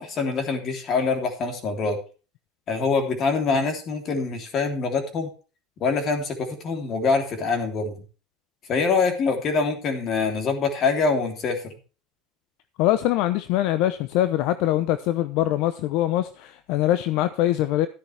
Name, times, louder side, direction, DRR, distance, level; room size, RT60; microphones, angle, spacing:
voice 1, 0.0-2.0 2.7-5.3 5.8-7.9 8.7-11.7, left 4 dB, 40° left, 3.2 m, -24 dB
voice 2, 12.8-17.9, left 14 dB, 65° left, 0.7 m, -23 dB
12.5 x 10.5 x 3.4 m
supercardioid pair, 135°, 0 cm